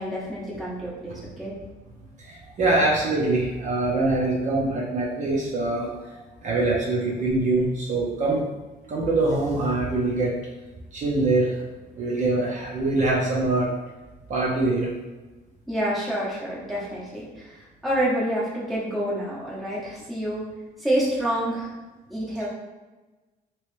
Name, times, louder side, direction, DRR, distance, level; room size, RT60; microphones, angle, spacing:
voice 1, 0.0-1.5 15.7-17.6 17.8-20.4 20.8-21.7 22.1-22.5, right 1 dB, ahead, -8 dB, 0.9 m, -28 dB
voice 2, 2.3-5.9 6.4-8.4 8.9-10.3 10.9-11.6 11.9-13.7 14.3-14.9, right 2 dB, 45° right, -4 dB, 0.8 m, -23 dB
3.1 x 3.0 x 3.2 m, 1.2 s
cardioid pair, 135°, 18 cm